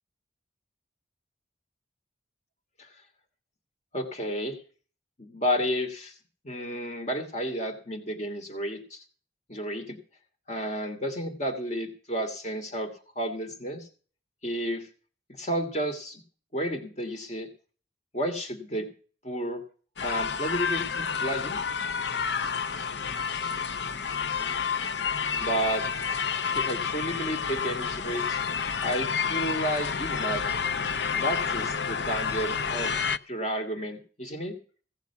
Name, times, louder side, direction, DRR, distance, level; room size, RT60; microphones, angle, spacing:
voice 1, 3.9-4.6 5.2-6.2 6.4-9.0 9.5-10.0 10.5-13.9 14.4-14.9 15.3-16.2 16.5-17.5 18.1-18.9 19.2-19.6 20.0-21.6 25.4-25.8 26.5-28.4 28.8-30.4 31.2-34.6, equal, 40° left, 6 dB, 2.6 m, -31 dB
sound 1, 20.0-33.2, left 6 dB, 65° left, 0.7 m, -29 dB
17.0 x 7.2 x 7.0 m, 0.40 s
head